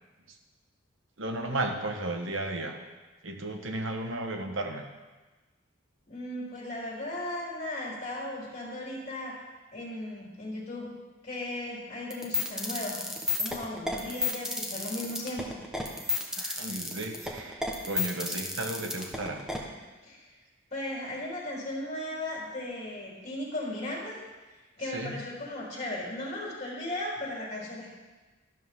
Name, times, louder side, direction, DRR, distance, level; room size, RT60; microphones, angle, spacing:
voice 1, 1.2-2.8 3.2-4.8 6.6-6.7 16.4-19.4 24.8-25.2, right 2 dB, 75° right, 4 dB, 1.4 m, -34 dB
voice 2, 6.1-9.3 9.7-10.9 11.2-13.0 13.4-15.5 20.0-20.3 20.7-24.2 24.8-27.9, left 1 dB, 35° left, -5 dB, 3.7 m, -36 dB
sound 1, 12.1-19.6, left 3 dB, 5° right, 1.3 m, -31 dB
12.5 x 12.0 x 3.8 m, 1.2 s
head